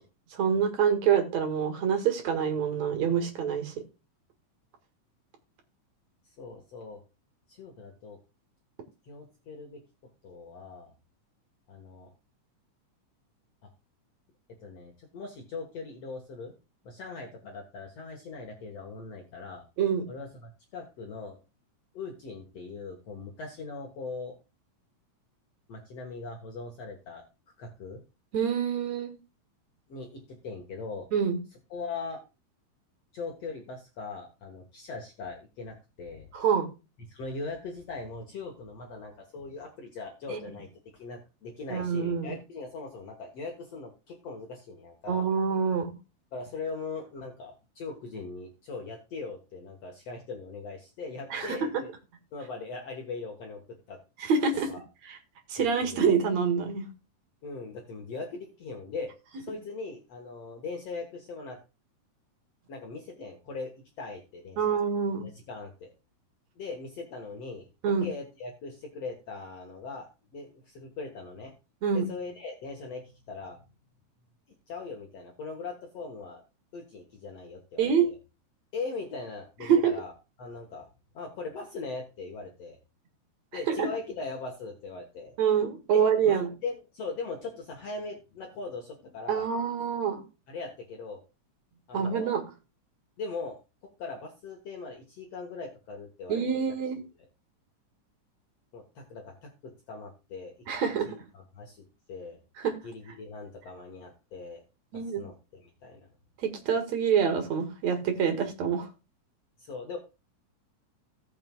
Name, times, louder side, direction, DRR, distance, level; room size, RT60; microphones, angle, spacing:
voice 1, 0.3-3.8 19.8-20.0 28.3-29.1 31.1-31.4 36.3-36.7 40.3-40.5 41.7-42.4 45.1-45.9 51.3-51.6 54.2-54.7 55.1-55.2 55.5-56.9 64.6-65.3 67.8-68.1 71.8-72.0 77.8-78.1 79.7-79.9 83.7-83.9 85.4-86.5 89.3-90.2 91.9-92.4 96.3-97.0 100.7-101.1 102.6-102.7 104.9-105.3 106.4-108.9, right 7 dB, 60° right, 5 dB, 2.8 m, -26 dB
voice 2, 6.2-7.0 7.5-8.2 9.0-9.8 10.2-10.9 11.7-12.1 14.6-16.5 16.8-19.6 20.1-21.4 21.9-24.4 25.7-27.2 27.6-28.0 29.9-31.1 31.7-32.2 33.1-36.3 37.1-40.7 40.9-45.2 46.3-51.9 52.3-54.0 54.7-54.8 55.6-56.1 57.4-59.1 59.4-61.6 62.7-63.7 64.0-64.8 65.2-65.9 66.6-67.7 68.0-71.5 71.9-73.6 74.7-76.4 76.7-78.2 78.7-80.1 80.4-80.9 81.1-82.8 83.5-85.3 85.9-89.5 90.5-91.2 91.9-92.3 93.2-96.6 98.7-100.6 101.0-102.4 102.8-104.6 104.9-106.1 109.6-110.0, left 4 dB, 55° left, 2 dB, 2.3 m, -40 dB
18.0 x 6.1 x 2.3 m, 0.29 s
omnidirectional pair, 3.7 m